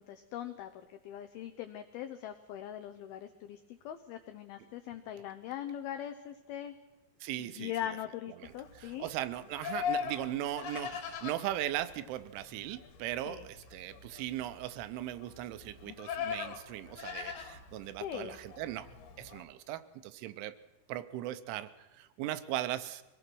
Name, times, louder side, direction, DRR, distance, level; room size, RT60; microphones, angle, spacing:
voice 1, 0.0-6.8 7.4-9.1 13.3-13.5 18.0-18.4, left 10 dB, 85° left, 7 dB, 2.1 m, -41 dB
voice 2, 7.2-7.7 8.4-18.9 19.2-20.6 20.9-23.0, right 13 dB, 85° right, 12 dB, 3.3 m, -38 dB
Livestock farm animals working animals, 8.4-19.4, left 7 dB, 60° left, 3.6 m, -41 dB
24.0 x 18.0 x 6.2 m, 1.1 s
omnidirectional pair, 5.4 m